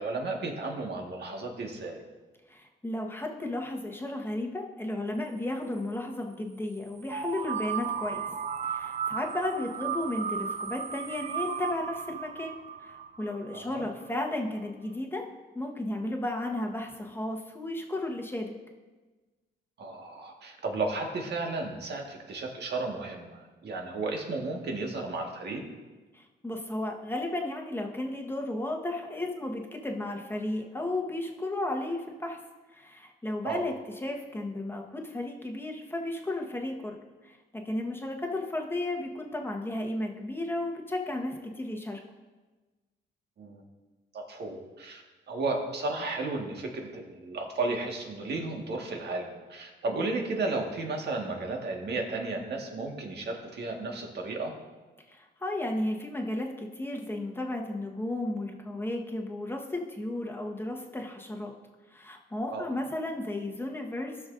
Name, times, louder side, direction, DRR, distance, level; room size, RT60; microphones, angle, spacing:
voice 1, 0.0-2.0 13.5-13.8 19.8-25.6 33.4-33.7 43.4-43.6 44.1-45.0 45.3-54.5 62.5-62.7, right 3 dB, 55° right, 1 dB, 1.7 m, -33 dB
voice 2, 2.5-8.3 8.7-15.2 15.5-18.5 26.1-32.4 32.7-33.7 34.0-36.9 37.2-42.0 55.1-61.5 61.9-64.2, left 1 dB, 10° left, 1 dB, 1.3 m, -34 dB
sound 1, 7.1-13.9, right 7 dB, 35° right, 0.4 m, -35 dB
17.0 x 6.1 x 2.6 m, 1.3 s
cardioid pair, 90°, 20 cm